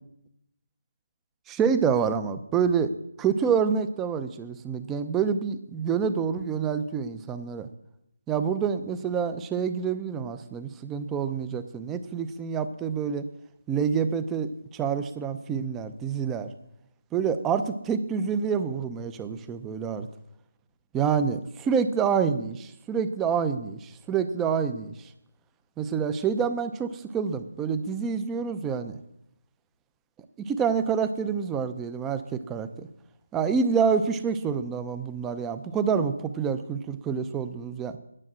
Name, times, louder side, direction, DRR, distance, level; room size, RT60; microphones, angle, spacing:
voice 1, 1.5-7.7 8.3-13.3 13.7-16.5 17.1-20.1 20.9-25.1 25.8-29.0 30.4-32.9 33.3-38.0, right 6 dB, 10° right, 11 dB, 0.6 m, -27 dB
9.9 x 7.6 x 7.5 m, 0.80 s
figure-of-eight pair, 160°, 0 cm